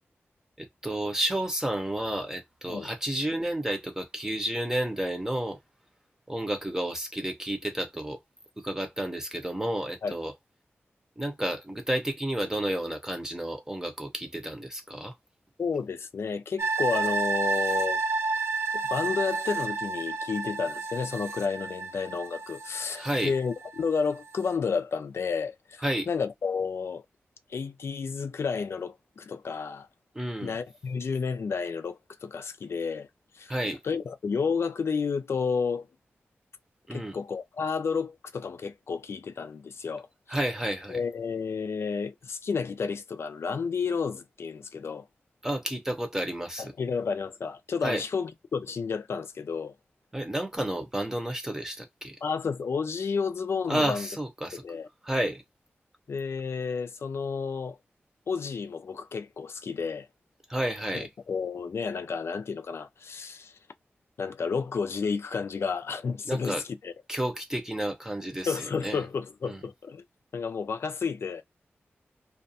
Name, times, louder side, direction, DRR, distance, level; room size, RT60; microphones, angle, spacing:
voice 1, 0.6-5.6 6.3-8.2 8.6-10.3 11.2-15.1 22.9-23.3 25.8-26.1 30.1-30.5 33.5-33.8 36.9-37.2 40.3-41.0 45.4-46.7 47.8-48.0 50.1-52.2 53.7-54.6 55.0-55.4 60.5-61.1 66.2-66.6 67.1-69.0 69.4-69.6, right 1 dB, 10° right, 0.7 m, -31 dB
voice 2, 15.6-18.0 18.7-27.0 27.5-29.9 30.4-33.1 33.3-33.5 33.8-35.9 36.9-40.4 40.9-45.1 46.6-49.7 52.2-54.1 54.6-54.9 56.1-57.8 58.3-60.1 60.9-63.5 64.2-66.9 68.5-70.0 70.3-71.4, left 5 dB, 70° left, 0.4 m, -31 dB
sound 1, 16.6-23.9 24.3-24.4, right 4 dB, 85° right, 0.4 m, -31 dB
2.4 x 2.2 x 2.6 m
wide cardioid pair, 100°, 4 cm